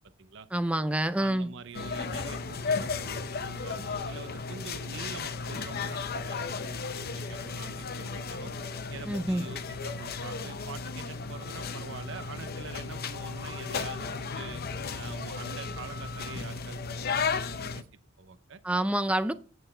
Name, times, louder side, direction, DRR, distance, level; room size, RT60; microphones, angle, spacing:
voice 1, 0.5-1.5 9.1-9.4 18.6-19.3, right 1 dB, 5° right, 0.4 m, -27 dB
voice 2, 1.2-8.5 8.9-14.6 15.0-17.9 18.2-18.6, right 5 dB, 65° right, 0.7 m, -45 dB
sound 1, 1.7-17.8, left 4 dB, 50° left, 0.7 m, -35 dB
9.0 x 7.8 x 4.4 m
head